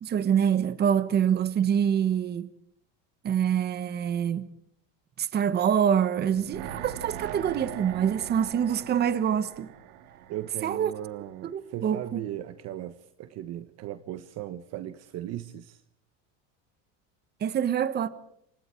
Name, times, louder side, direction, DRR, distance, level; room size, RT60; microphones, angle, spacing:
voice 1, 0.0-2.5 3.2-4.5 5.2-9.7 10.6-10.9 11.4-12.2 17.4-18.1, right 8 dB, 30° right, 1.4 m, -25 dB
sound 1, 6.2-11.4 11.7-11.8, right 10 dB, 70° right, 3.3 m, -41 dB
voice 2, 10.3-15.8, right 13 dB, 45° right, 1.3 m, -37 dB
28.0 x 25.0 x 4.6 m
cardioid pair, 150°, 35 cm